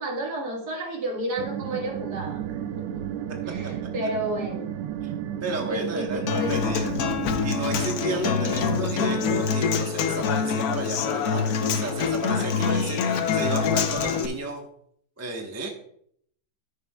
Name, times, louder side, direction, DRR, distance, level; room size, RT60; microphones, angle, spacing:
voice 1, 0.0-3.1 3.5-4.7 5.7-6.8, right 1 dB, 60° right, 0 dB, 2.2 m, -31 dB
sound 1, 1.4-9.5, right 10 dB, 85° right, 1.3 m, -33 dB
voice 2, 5.4-7.0 7.4-14.6 15.2-15.7, right 2 dB, 10° right, 2 dB, 0.8 m, -32 dB
Human voice / Acoustic guitar, 6.3-14.3, left 6 dB, 65° left, 1.1 m, -25 dB
13.5 x 6.7 x 2.3 m, 0.66 s
omnidirectional pair, 2.0 m